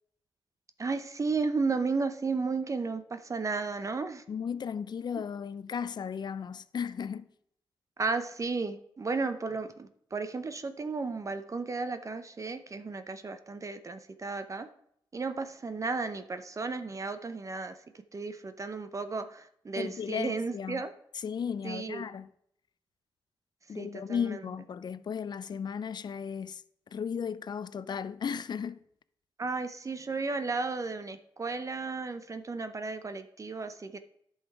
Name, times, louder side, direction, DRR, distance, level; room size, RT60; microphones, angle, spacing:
voice 1, 0.8-4.2 8.0-14.7 15.1-17.8 18.1-20.9 21.6-22.0 23.8-24.4 29.4-34.0, right 4 dB, 35° right, 0.6 m, -34 dB
voice 2, 4.3-7.3 19.8-20.8 21.1-22.3 23.7-26.6 26.9-28.8, left 7 dB, 55° left, 0.5 m, -35 dB
10.5 x 5.6 x 4.7 m
cardioid pair, 75°, 9 cm